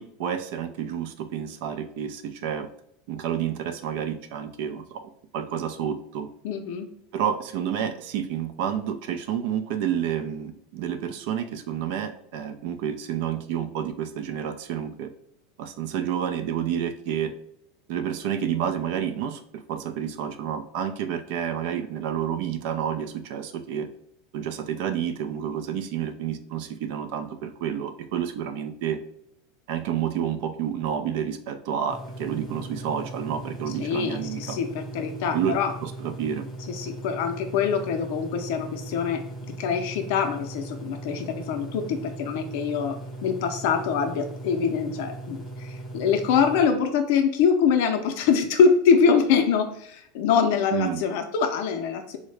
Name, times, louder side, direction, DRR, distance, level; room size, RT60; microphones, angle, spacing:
voice 1, 0.0-2.7 3.1-5.0 5.3-6.3 7.1-15.1 15.6-17.3 17.9-23.9 24.3-29.0 29.7-34.6 35.3-36.5 50.7-51.0, right 9 dB, 65° right, 9 dB, 0.3 m, -29 dB
voice 2, 6.4-6.9 33.8-35.7 36.7-52.2, left 6 dB, 65° left, 4 dB, 0.4 m, -24 dB
sound 1, 31.9-46.7, right 2 dB, 15° left, 0.6 m, -38 dB
3.6 x 2.1 x 3.2 m, 0.73 s
supercardioid pair, 145°, 0 cm